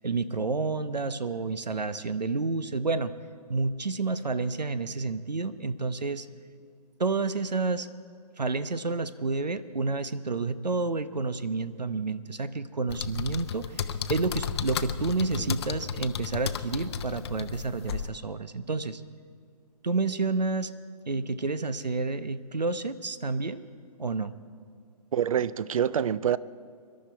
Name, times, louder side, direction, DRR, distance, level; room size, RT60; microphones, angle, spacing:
voice 1, 0.0-3.1 3.5-6.3 7.0-7.9 8.4-19.0 19.8-20.7 21.1-23.6 24.0-24.3, right 3 dB, 90° right, 14 dB, 0.9 m, -30 dB
sound 1, 12.9-18.1, left 7 dB, 40° left, 0.7 m, -33 dB
voice 2, 25.1-26.4, right 9 dB, 55° right, 19 dB, 0.5 m, -26 dB
24.5 x 12.0 x 4.5 m, 2.3 s
figure-of-eight pair, 145°, 21 cm